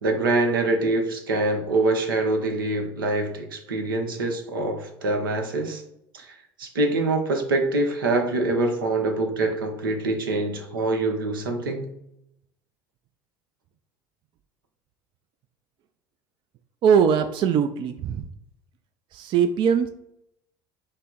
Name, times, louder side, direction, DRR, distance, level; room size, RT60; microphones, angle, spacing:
voice 1, 0.0-5.8 6.1-11.9, right 2 dB, 85° right, 4 dB, 0.8 m, -25 dB
voice 2, 16.8-18.2 19.1-19.9, right 7 dB, 45° right, 9 dB, 0.4 m, -21 dB
5.4 x 2.0 x 3.7 m, 0.79 s
hypercardioid pair, 70°, 11 cm